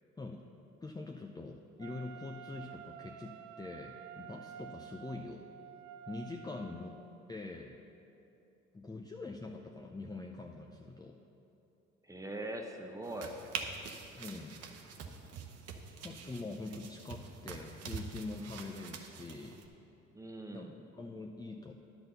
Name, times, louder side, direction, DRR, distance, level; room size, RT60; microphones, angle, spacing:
voice 1, 0.8-5.4 6.1-7.0 7.3-7.7 8.7-11.2 14.1-14.7 16.0-19.6 20.5-21.7, left 3 dB, 15° left, 1 dB, 0.6 m, -44 dB
Wind instrument woodwind instrument, 1.8-7.0, right 9 dB, 75° right, 0.4 m, -50 dB
voice 2, 12.0-13.4 20.1-20.7, right 1 dB, 10° right, 3 dB, 1.1 m, -42 dB
sound 1, 13.0-19.7, right 5 dB, 60° right, 0.9 m, -45 dB
10.5 x 4.1 x 6.7 m, 2.8 s
hypercardioid pair, 60°, 29 cm